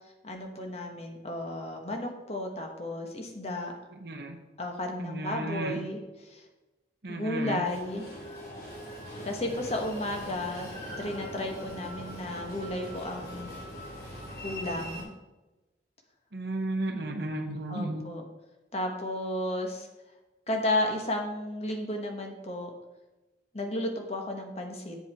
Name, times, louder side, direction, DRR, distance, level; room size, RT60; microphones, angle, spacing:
voice 1, 0.2-3.7 4.6-6.5 7.1-8.1 9.2-10.7 11.0-13.6 14.4-15.1 17.7-18.2 18.7-19.9 20.5-22.7 23.5-25.0, left 1 dB, 35° left, 3 dB, 1.3 m, -33 dB
voice 2, 4.0-4.4 5.0-5.8 7.0-7.7 16.3-18.0, right 2 dB, 65° right, 4 dB, 0.8 m, -33 dB
Train, 7.6-15.0, equal, 60° left, 3.2 m, -41 dB
8.1 x 7.3 x 4.5 m, 1.1 s
head